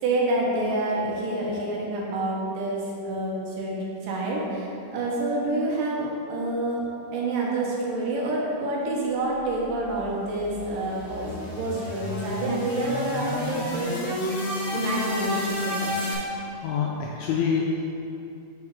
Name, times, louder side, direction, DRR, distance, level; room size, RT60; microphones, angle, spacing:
voice 1, 0.0-6.8 7.1-13.9 14.3-14.4 14.7-16.1, right 2 dB, 85° right, -4 dB, 2.7 m, -28 dB
sound 1, 9.7-16.1, left 1 dB, 65° left, 0.6 m, -31 dB
voice 2, 16.3-17.8, left 6 dB, 85° left, -2 dB, 1.7 m, -27 dB
5.8 x 4.8 x 4.6 m, 2.7 s
omnidirectional pair, 3.8 m